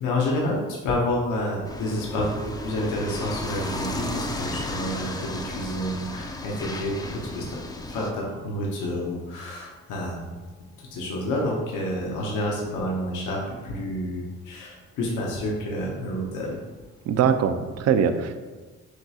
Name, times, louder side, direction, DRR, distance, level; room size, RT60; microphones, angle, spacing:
voice 1, 0.0-7.6 7.9-10.4 10.9-16.6, left 1 dB, 85° left, -3 dB, 0.8 m, -29 dB
sound 1, 1.6-8.1, left 2 dB, 15° left, 0.3 m, -34 dB
voice 2, 17.1-18.4, right 7 dB, 55° right, 9 dB, 0.4 m, -22 dB
6.2 x 2.3 x 2.8 m, 1.3 s
cardioid pair, 90°, 30 cm